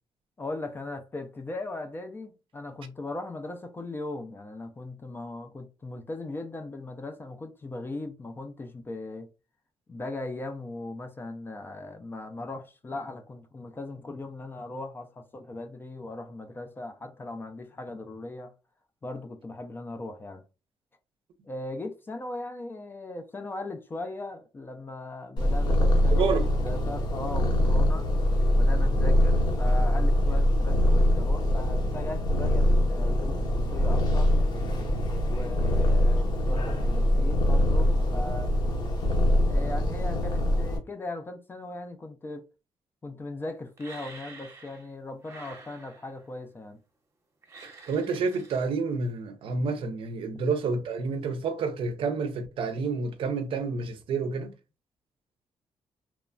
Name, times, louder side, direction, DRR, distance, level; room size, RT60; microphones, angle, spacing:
voice 1, 0.4-9.3 9.9-18.5 19.0-20.4 21.4-28.1 28.6-33.4 33.7-34.3 35.3-38.5 39.5-42.5 43.0-46.8, left 2 dB, 20° left, 0.3 m, -38 dB
Purr, 25.4-40.8, left 1 dB, 50° left, 0.7 m, -23 dB
sound 1, 43.8-44.9 45.2-46.3 47.4-48.6, right 3 dB, 30° right, 0.8 m, -48 dB
voice 2, 47.6-54.5, right 4 dB, 60° right, 0.5 m, -29 dB
3.0 x 2.1 x 2.4 m
cardioid pair, 145°, 10 cm